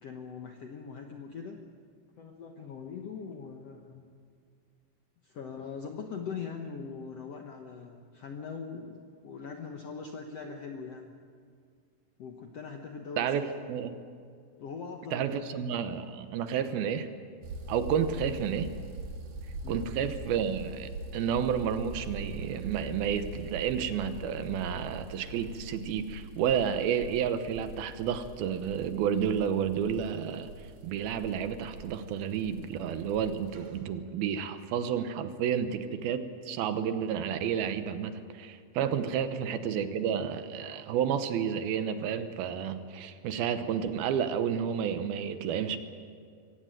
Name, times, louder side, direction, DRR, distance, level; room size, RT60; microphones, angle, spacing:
voice 1, 0.0-1.6 2.2-4.1 5.2-11.1 12.2-13.5 14.6-15.4 17.9-18.3 19.6-19.9 23.9-24.0 39.2-39.3, left 5 dB, 70° left, 4 dB, 1.5 m, -41 dB
voice 2, 13.2-14.0 15.1-17.1 17.7-18.7 19.7-30.5 30.8-45.8, right 8 dB, 75° right, 10 dB, 2.8 m, -31 dB
sound 1, 17.4-33.7, right 2 dB, 60° right, 3.6 m, -43 dB
24.0 x 16.5 x 9.1 m, 2.2 s
omnidirectional pair, 4.5 m